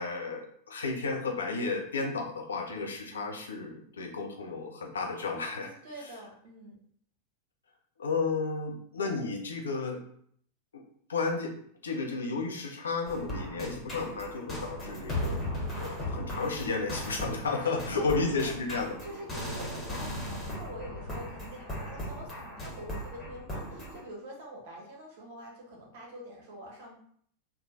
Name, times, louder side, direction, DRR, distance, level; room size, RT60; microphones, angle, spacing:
voice 1, 0.0-5.7 8.0-10.0 10.7-10.8 11.1-15.4 15.8-19.0, left 4 dB, 70° left, 1 dB, 0.7 m, -33 dB
voice 2, 5.5-6.8 17.6-18.1 18.4-18.5 19.0-27.0, equal, 50° right, -2 dB, 1.2 m, -45 dB
sound 1, 13.1-24.0, equal, 20° left, 1.2 m, -37 dB
3.4 x 2.2 x 4.1 m, 0.62 s
figure-of-eight pair, 90°, 0 cm